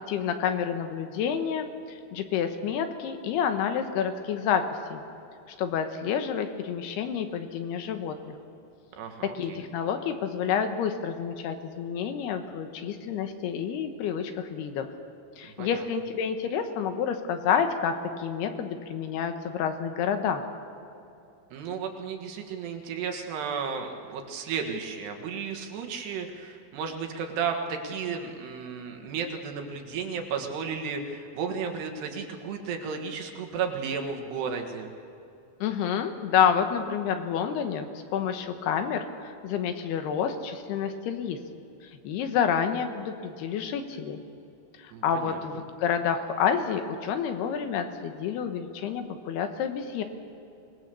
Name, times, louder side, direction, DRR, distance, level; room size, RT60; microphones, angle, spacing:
voice 1, 0.0-4.6 4.9-5.0 5.6-8.3 9.3-14.9 15.4-20.4 35.6-41.4 42.0-44.2 44.8-50.0, left 7 dB, 80° left, 7 dB, 3.2 m, -29 dB
voice 2, 9.0-9.6 15.6-15.9 21.5-34.9 44.9-45.4, right 6 dB, 85° right, 3 dB, 3.8 m, -33 dB
24.5 x 19.0 x 7.0 m, 2.7 s
omnidirectional pair, 4.6 m